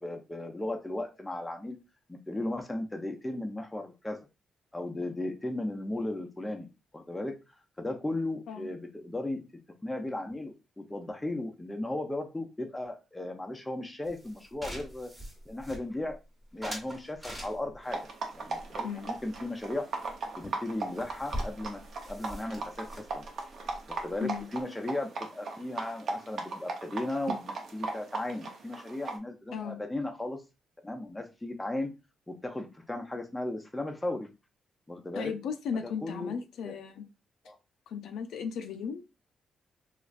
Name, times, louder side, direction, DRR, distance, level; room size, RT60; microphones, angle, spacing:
voice 1, 0.0-1.8 2.1-4.2 4.7-6.7 6.9-7.4 7.8-9.4 9.8-15.1 15.5-16.2 16.5-18.0 18.3-19.9 20.4-21.8 22.1-23.2 23.9-30.4 30.8-31.9 32.3-34.3 34.9-35.3 35.8-36.4 36.6-36.8 37.5-37.6, left 1 dB, 10° left, 4 dB, 0.5 m, -36 dB
sound 1, 14.1-16.2 16.6-17.9 18.5-19.7 20.0-20.1 20.4-20.5 20.7-24.6, equal, 10° right, 1.0 m, -42 dB
sound 2, 17.8-29.2, right 3 dB, 55° right, 0.7 m, -38 dB
voice 2, 24.2-24.5 29.5-29.8 35.1-37.1 37.9-39.0, left 6 dB, 85° left, 7 dB, 0.4 m, -36 dB
3.1 x 2.4 x 2.4 m, 0.27 s
cardioid pair, 130°, 0 cm